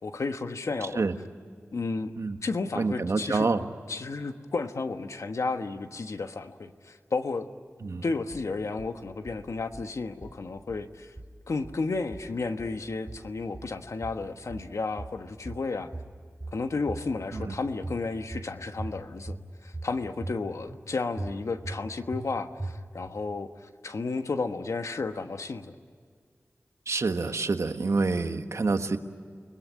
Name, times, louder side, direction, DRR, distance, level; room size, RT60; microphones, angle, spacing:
voice 1, 0.0-1.0 1.7-2.1 2.4-3.5 3.9-7.5 8.0-11.1 11.5-15.9 16.5-19.4 19.6-25.7, left 3 dB, 80° left, 7 dB, 1.3 m, -32 dB
voice 2, 2.7-3.7 7.8-8.0 17.3-17.5 26.9-29.0, right 3 dB, 70° right, 7 dB, 1.5 m, -27 dB
sound 1, 8.3-8.9 9.3-9.9 10.2-10.9 11.2-11.9 12.1-12.8 13.1-13.8 14.0-14.7 15.0-15.7 15.9-16.6 16.9-17.5 17.8-18.5 18.8-19.4 19.7-20.4 20.7-20.8 21.2-21.8 22.1-22.3 22.6-23.1, right 2 dB, 30° right, 3.4 m, -39 dB
29.5 x 21.0 x 9.4 m, 2.1 s
wide cardioid pair, 80°, 5 cm